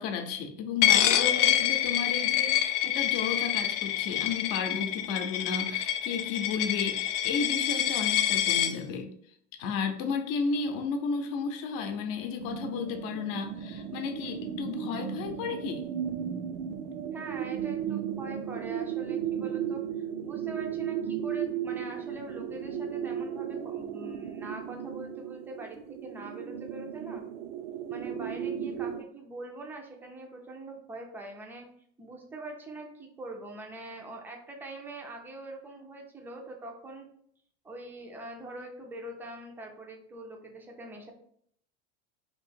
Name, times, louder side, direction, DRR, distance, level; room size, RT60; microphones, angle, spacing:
voice 1, 0.0-9.1 9.6-15.9, left 5 dB, 55° left, 5 dB, 0.7 m, -33 dB
Coin (dropping), 0.8-8.7, left 11 dB, 90° left, 0.5 m, -26 dB
sound 1, 12.4-29.0, right 9 dB, 70° right, 0.5 m, -35 dB
voice 2, 17.1-19.8 20.2-27.2 27.9-31.7 32.0-37.1 37.6-41.1, right 2 dB, 5° right, 1 dB, 0.3 m, -43 dB
3.0 x 2.7 x 4.4 m, 0.65 s
supercardioid pair, 140°, 36 cm